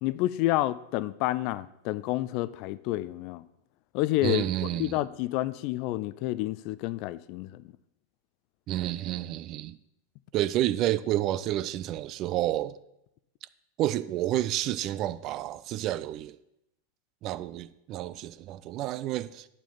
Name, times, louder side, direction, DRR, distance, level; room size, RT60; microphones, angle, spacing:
voice 1, 0.0-3.5 3.9-4.4 4.8-7.6, left 16 dB, 45° left, 0.4 m, -29 dB
voice 2, 4.2-5.0 8.7-9.8 10.3-12.8 13.8-16.4 17.2-19.5, right 14 dB, 35° right, 0.4 m, -30 dB
8.6 x 7.1 x 5.7 m
figure-of-eight pair, 90°, 0 cm